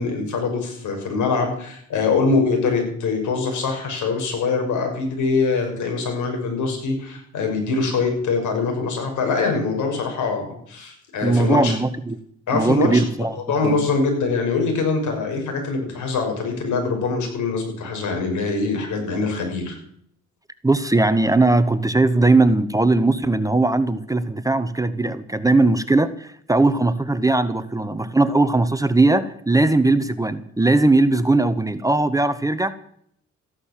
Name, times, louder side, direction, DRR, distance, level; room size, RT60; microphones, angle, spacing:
voice 1, 0.0-11.7 12.5-13.0 13.3-19.8, left 4 dB, 75° left, 3 dB, 6.0 m, -23 dB
voice 2, 11.2-12.2 12.5-13.8 20.6-32.7, right 2 dB, 10° right, 12 dB, 1.0 m, -19 dB
14.5 x 11.0 x 7.4 m, 0.66 s
cardioid pair, 90°, 30 cm